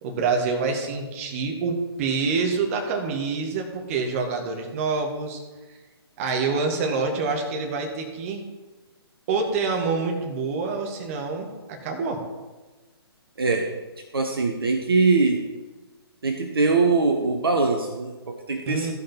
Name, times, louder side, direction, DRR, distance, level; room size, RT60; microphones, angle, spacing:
voice 1, 0.0-5.4 6.2-8.5 9.3-12.2 18.7-18.9, right 4 dB, 30° right, 2 dB, 1.9 m, -26 dB
voice 2, 13.4-13.7 14.1-15.4 16.2-18.9, right 3 dB, 65° right, 5 dB, 1.0 m, -22 dB
14.5 x 5.2 x 4.5 m, 1.2 s
figure-of-eight pair, 130°, 13 cm